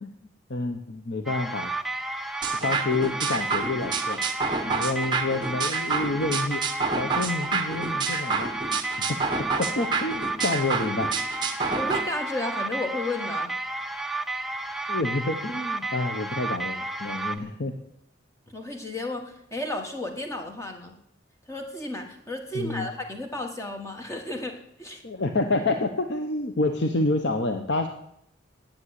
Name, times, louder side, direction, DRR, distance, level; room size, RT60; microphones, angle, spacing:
voice 1, 0.5-1.7 2.6-4.2 4.6-6.6 6.9-8.5 9.0-9.2 9.6-11.2 14.9-17.8 22.5-22.9 25.0-27.9, left 2 dB, 65° left, 6 dB, 0.8 m, -28 dB
sound 1, 1.3-17.4, right 2 dB, ahead, 0.4 m, -32 dB
sound 2, 2.4-12.0, right 4 dB, 25° right, 0.9 m, -29 dB
voice 2, 11.7-13.6 18.5-21.0 21.5-25.0, left 1 dB, 15° left, 3 dB, 1.4 m, -33 dB
10.0 x 8.9 x 8.1 m, 0.76 s
head